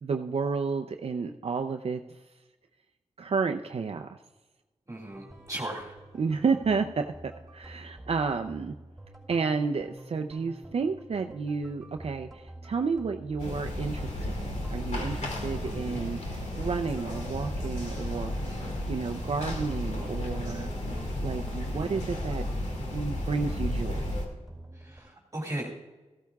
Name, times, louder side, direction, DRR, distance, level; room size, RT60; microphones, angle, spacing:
voice 1, 0.0-2.2 3.2-4.2 6.1-8.7 9.3-18.3 18.9-20.7 21.2-22.4 22.8-24.1, right 5 dB, 60° right, 5 dB, 0.5 m, -31 dB
voice 2, 4.9-6.0 18.5-18.8 24.8-25.7, right 1 dB, 30° right, -2 dB, 2.0 m, -37 dB
sound 1, 5.1-25.0, right 1 dB, ahead, 4.4 m, -48 dB
sound 2, 13.4-24.2, left 1 dB, 85° left, 2.2 m, -33 dB
15.5 x 13.0 x 2.4 m, 1.2 s
wide cardioid pair, 95°, 12 cm